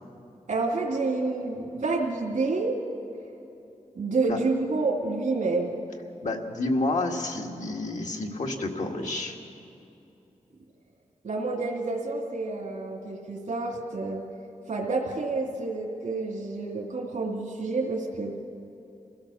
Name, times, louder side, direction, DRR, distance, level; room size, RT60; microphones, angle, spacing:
voice 1, 0.5-2.7 3.9-5.7 11.2-14.2 14.7-18.4, right 3 dB, 90° right, -2 dB, 2.4 m, -29 dB
voice 2, 6.2-9.4, left 2 dB, 70° left, 1 dB, 2.1 m, -29 dB
26.5 x 16.5 x 7.1 m, 2.8 s
wide cardioid pair, 90°, 13 cm